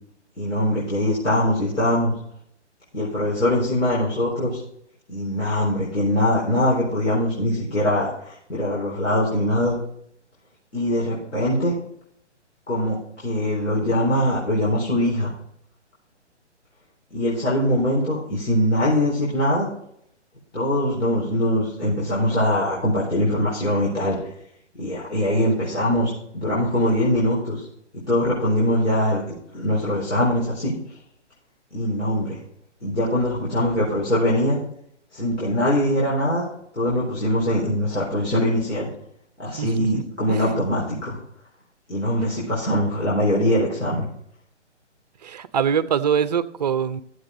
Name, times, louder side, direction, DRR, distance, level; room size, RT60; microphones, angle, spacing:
voice 1, 0.4-2.1 2.9-4.6 5.1-9.8 10.7-11.8 12.7-15.3 17.1-19.7 20.5-24.2 24.8-27.7 28.1-29.2 29.5-30.7 31.7-32.4 32.8-34.6 35.1-36.4 36.7-38.9 39.4-41.2 41.9-44.1, left 1 dB, 75° left, -6 dB, 4.3 m, -22 dB
voice 2, 39.6-40.0 40.3-40.6 45.2-47.0, right 7 dB, 35° right, 13 dB, 0.6 m, -24 dB
13.5 x 7.9 x 3.8 m, 0.72 s
figure-of-eight pair, 135°, 36 cm